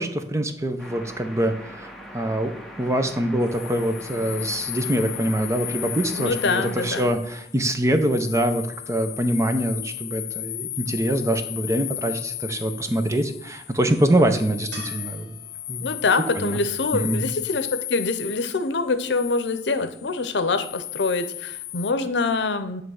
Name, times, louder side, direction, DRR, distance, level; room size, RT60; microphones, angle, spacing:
voice 1, 0.0-2.5 2.8-15.4 15.7-15.9 16.3-16.6 16.9-17.3, right 1 dB, 15° right, 7 dB, 0.5 m, -24 dB
sound 1, 0.8-7.1, equal, ahead, 0.9 m, -41 dB
sound 2, 3.4-21.9, left 15 dB, 40° left, 0.3 m, -35 dB
voice 2, 6.2-7.1 15.8-22.8, left 3 dB, 80° left, 10 dB, 0.7 m, -25 dB
sound 3, 14.7-18.0 21.2-21.3, right 3 dB, 80° right, 1.8 m, -46 dB
9.2 x 3.3 x 6.3 m, 0.72 s
head